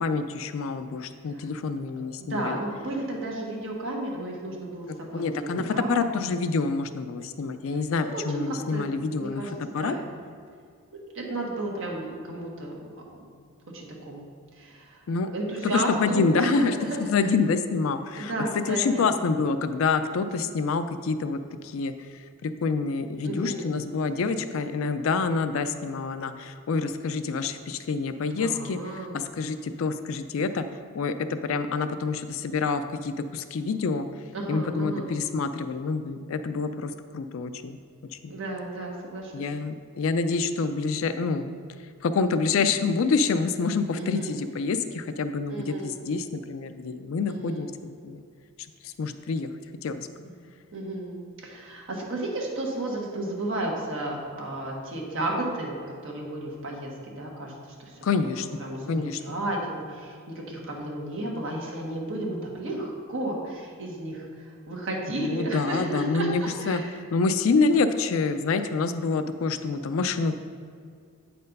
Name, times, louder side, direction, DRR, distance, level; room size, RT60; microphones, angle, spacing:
voice 1, 0.0-2.6 5.1-9.4 9.7-9.9 15.1-15.3 15.6-16.8 17.1-18.3 18.7-30.7 30.9-34.1 34.5-37.8 38.1-38.3 39.3-41.5 42.0-47.7 48.0-48.2 48.8-49.5 49.8-50.1 58.0-58.5 58.9-59.2 65.2-66.8 67.1-70.3, left 4 dB, 65° left, 10 dB, 0.4 m, -27 dB
voice 2, 2.2-6.1 7.7-8.9 9.2-9.5 9.8-10.1 11.1-13.3 13.7-15.0 15.3-17.3 18.2-19.1 23.2-23.8 28.4-29.2 34.3-35.1 38.3-39.3 44.0-44.4 45.5-45.9 47.3-47.7 50.2-50.3 50.7-55.8 56.0-58.0 58.4-66.9, right 1 dB, 60° right, -2 dB, 1.5 m, -33 dB
8.4 x 4.3 x 5.3 m, 2.2 s
head